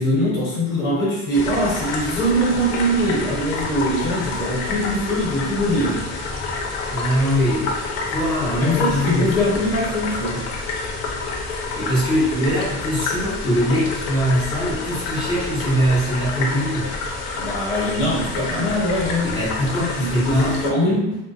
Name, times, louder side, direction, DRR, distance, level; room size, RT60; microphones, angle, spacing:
voice 1, 0.0-6.0 8.5-10.5 17.4-19.3 19.8-21.2, equal, 80° left, -6 dB, 1.0 m, -22 dB
sound 1, 1.3-20.7, left 3 dB, 55° left, 0.5 m, -28 dB
voice 2, 6.9-7.7 8.1-9.3 11.8-16.9 19.2-20.5, equal, 15° left, -10 dB, 1.0 m, -22 dB
2.5 x 2.1 x 2.4 m, 0.92 s
cardioid pair, 140°, 34 cm